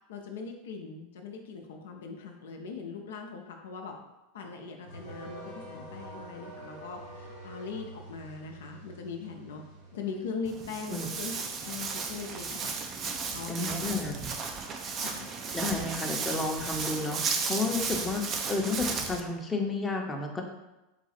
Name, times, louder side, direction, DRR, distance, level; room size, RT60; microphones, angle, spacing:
voice 1, 0.1-4.0 4.3-9.6 9.9-11.3 11.6-12.7 13.3-13.7 14.1-14.2 15.0-15.3, left 5 dB, 75° left, 2 dB, 0.5 m, -40 dB
sound 1, 4.8-10.4, right 1 dB, 80° right, 1.4 m, -46 dB
Walk footsteps, 10.5-19.2, right 5 dB, 35° right, 0.5 m, -34 dB
voice 2, 13.5-14.2 15.5-20.4, left 3 dB, 15° left, 1 dB, 0.7 m, -31 dB
4.0 x 2.3 x 4.2 m, 1.0 s
hypercardioid pair, 90°, 0 cm